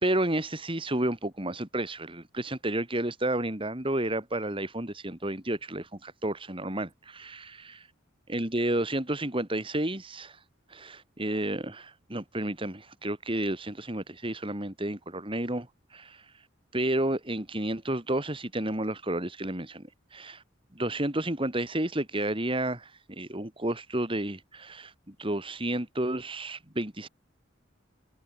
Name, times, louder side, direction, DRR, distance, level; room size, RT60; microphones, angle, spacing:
voice 1, 0.0-7.8 8.3-10.4 10.7-15.7 15.9-16.2 16.7-20.4 20.7-27.1, right 1 dB, 25° right, 3.1 m, -31 dB
open air
head